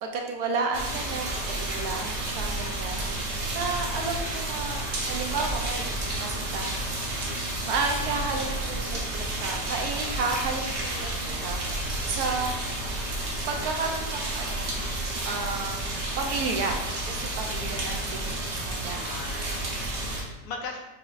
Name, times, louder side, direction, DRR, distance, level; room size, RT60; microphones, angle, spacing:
voice 1, 0.0-3.1 3.5-6.8 7.4-12.7 13.5-14.9 15.2-19.0, right 4 dB, 75° right, 2 dB, 1.1 m, -32 dB
sound 1, 0.7-20.2, right 1 dB, 50° right, 1.0 m, -31 dB
voice 2, 15.3-15.6 18.9-20.8, left 4 dB, 70° left, 1 dB, 1.2 m, -40 dB
6.2 x 3.0 x 2.5 m, 1.1 s
omnidirectional pair, 1.8 m